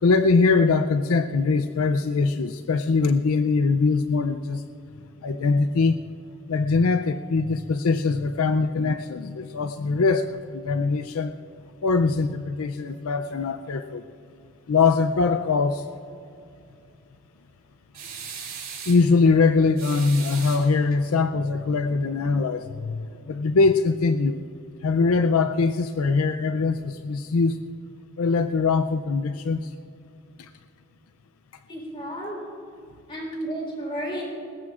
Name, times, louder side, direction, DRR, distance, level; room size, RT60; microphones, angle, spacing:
voice 1, 0.0-4.7 5.2-6.0 6.5-11.3 11.8-14.0 14.7-15.9 18.9-24.4 24.8-27.6 28.2-29.7 30.4-30.5, left 4 dB, 75° left, 9 dB, 0.5 m, -22 dB
sound 1, 17.9-19.1 19.8-21.0, right 6 dB, 40° right, 3.7 m, -38 dB
voice 2, 31.7-32.4 33.1-34.2, right 1 dB, 25° left, -2 dB, 3.8 m, -32 dB
21.5 x 19.0 x 2.5 m, 2.5 s
head